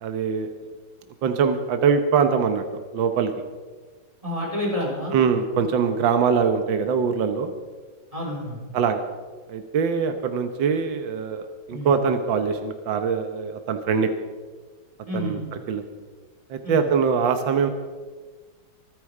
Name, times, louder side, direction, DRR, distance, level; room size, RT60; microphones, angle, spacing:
voice 1, 0.0-0.5 1.2-2.6 2.9-3.3 5.1-7.5 8.7-9.0 9.5-14.1 15.1-15.4 15.7-15.8 16.5-17.7, right 6 dB, 80° right, 7 dB, 1.8 m, -23 dB
voice 2, 4.2-5.1 8.1-8.6 11.7-11.9 15.1-15.4 16.6-16.9, left 1 dB, 15° right, -3 dB, 4.7 m, -29 dB
24.0 x 10.0 x 4.9 m, 1.4 s
omnidirectional pair, 2.0 m